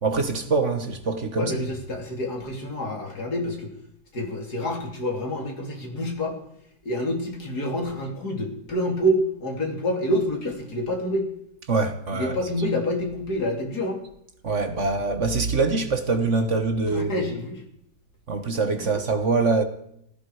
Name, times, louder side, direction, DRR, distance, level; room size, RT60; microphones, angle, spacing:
voice 1, 0.0-1.6 11.7-12.4 14.4-17.3 18.3-19.6, right 3 dB, 45° right, 1.7 m, -24 dB
voice 2, 1.4-3.7 4.1-6.4 6.9-11.3 12.1-14.0 16.9-17.6 18.8-18.9, equal, 70° left, 4.0 m, -27 dB
17.5 x 16.0 x 5.0 m
omnidirectional pair, 1.7 m